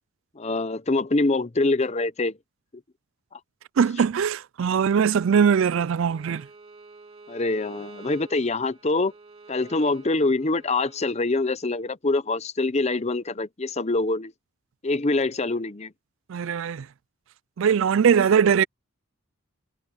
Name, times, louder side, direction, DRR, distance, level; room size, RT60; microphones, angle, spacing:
voice 1, 0.4-2.4 3.3-3.4 7.3-9.1 9.5-14.3 14.8-15.9, left 2 dB, 30° left, 0.7 m, -25 dB
voice 2, 3.8-6.4 16.3-16.9 17.6-18.6, right 7 dB, 60° right, 0.3 m, -21 dB
Bowed string instrument, 6.0-11.0, right 3 dB, 25° right, 2.5 m, -48 dB
head